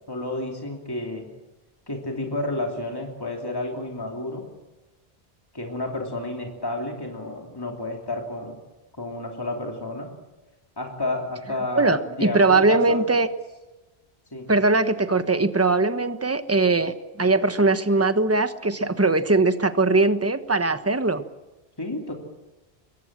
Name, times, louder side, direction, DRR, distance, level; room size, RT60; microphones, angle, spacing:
voice 1, 0.1-1.3 1.9-4.5 5.5-8.6 9.0-10.1 10.8-13.1 14.3-14.5 21.8-22.1, left 2 dB, 20° left, 1 dB, 3.1 m, -30 dB
voice 2, 11.7-13.3 14.5-21.2, right 3 dB, 15° right, 10 dB, 1.2 m, -21 dB
25.5 x 23.5 x 7.5 m, 1.1 s
omnidirectional pair, 1.1 m